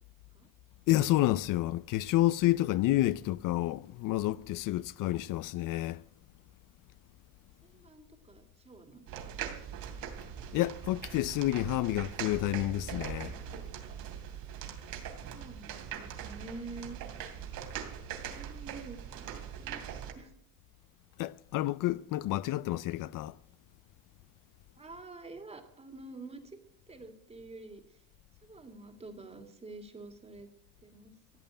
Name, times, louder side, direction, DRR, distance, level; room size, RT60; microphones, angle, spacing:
voice 1, 0.9-6.0 10.5-13.3 21.2-23.4, left 16 dB, 65° left, 0.5 m, -29 dB
voice 2, 7.6-9.1 9.4-9.6 15.2-17.4 18.3-19.2 19.6-19.9 20.1-20.3 24.8-26.6 26.9-28.0 28.4-30.5 30.8-31.1, right 3 dB, 15° right, 2.0 m, -48 dB
sound 1, 9.1-20.1, right 8 dB, 75° right, 2.9 m, -41 dB
16.0 x 9.1 x 8.9 m
cardioid pair, 155°, 35 cm